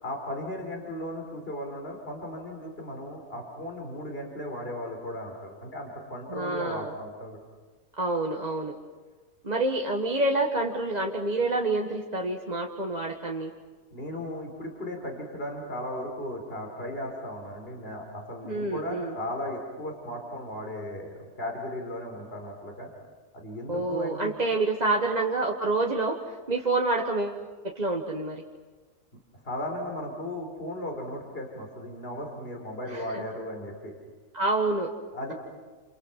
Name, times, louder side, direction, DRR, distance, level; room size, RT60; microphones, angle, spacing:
voice 1, 0.0-7.4 13.9-21.1 21.4-22.9 23.3-24.3 29.4-33.9 35.1-35.3, left 1 dB, 40° left, 2 dB, 4.2 m, -36 dB
voice 2, 6.3-6.9 8.0-8.7 9.4-13.5 18.4-19.2 23.7-26.2 26.5-28.4 32.9-33.2 34.3-34.9, right 2 dB, 30° right, 0 dB, 1.5 m, -28 dB
29.5 x 29.0 x 5.8 m, 1.3 s
omnidirectional pair, 1.6 m